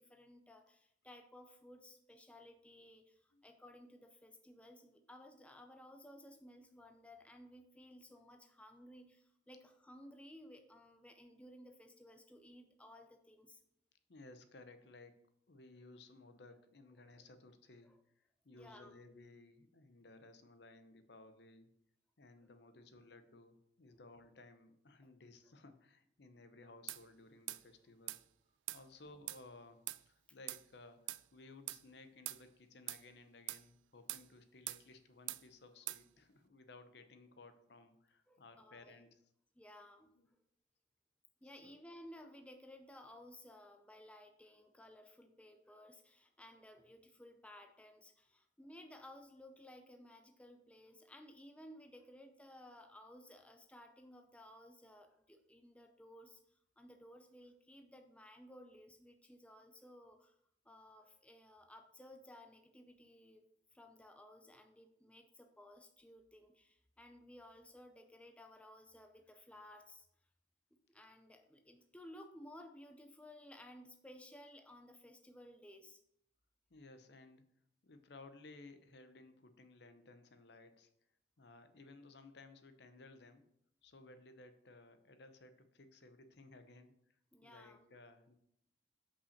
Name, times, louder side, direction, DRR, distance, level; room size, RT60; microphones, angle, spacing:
voice 1, 0.0-13.6 17.0-17.1 17.8-18.0 18.5-19.0 23.9-24.0 38.3-39.0 39.6-40.1 41.4-60.4 60.6-63.4 63.7-70.1 70.7-76.0 87.3-87.9, left 1 dB, 5° left, 5 dB, 0.5 m, -57 dB
voice 2, 14.1-21.7 22.2-28.2 28.7-29.8 30.1-39.2 39.7-39.9 40.1-40.3 41.4-41.8 76.7-77.4 77.8-80.9 81.4-83.5 83.8-87.2 87.4-88.4, left 2 dB, 60° left, 9 dB, 0.8 m, -58 dB
sound 1, 26.9-27.0 27.5-27.6 28.1-28.2 28.7-28.8 29.3-29.4 29.9-30.0 30.5-30.6 31.1-31.2 31.7-31.8 32.2-32.4 32.9-33.0 33.5-33.6 34.1-34.3 34.7-34.8 35.3-35.4 35.9-36.0, right 17 dB, 80° right, 0.3 m, -43 dB
5.7 x 5.5 x 6.4 m, 0.73 s
head